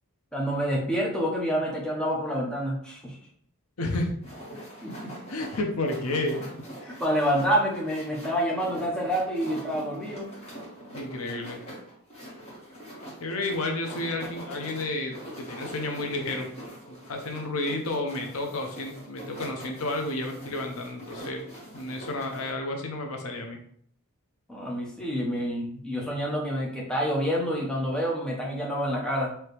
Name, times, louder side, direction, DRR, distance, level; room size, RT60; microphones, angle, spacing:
voice 1, 0.3-3.2 4.8-5.1 6.8-10.3 24.5-29.3, equal, 5° left, -3 dB, 0.9 m, -28 dB
voice 2, 3.8-4.2 5.3-6.4 6.8-7.0 9.7-9.9 10.9-11.6 13.2-16.5 16.9-21.4 21.7-23.6, left 2 dB, 70° left, 3 dB, 0.7 m, -31 dB
sound 1, 4.2-22.5, equal, 30° left, 1.7 m, -43 dB
4.4 x 2.9 x 3.3 m, 0.62 s
head